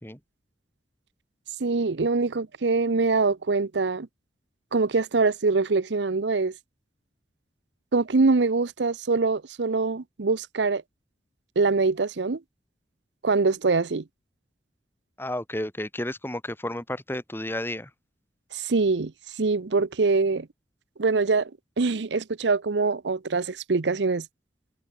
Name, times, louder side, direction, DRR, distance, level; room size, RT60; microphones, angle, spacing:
voice 1, 1.6-4.1 4.7-6.5 7.9-10.8 11.6-12.4 13.2-14.0 18.5-19.1 19.4-20.5 21.0-21.5 21.8-24.2, right 4 dB, 85° right, 0.7 m, -24 dB
voice 2, 15.2-17.9, left 1 dB, 15° left, 4.2 m, -32 dB
head